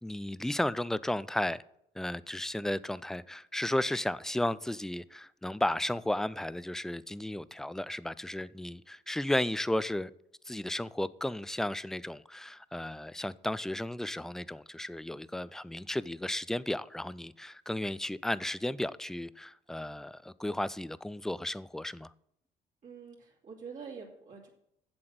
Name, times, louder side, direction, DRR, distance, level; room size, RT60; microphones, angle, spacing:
voice 1, 0.0-1.6 2.0-10.1 10.5-22.1, left 1 dB, 5° left, 0.3 m, -34 dB
voice 2, 22.8-24.5, right 5 dB, 50° right, 2.9 m, -46 dB
7.8 x 7.6 x 7.7 m
cardioid pair, 110°, 17 cm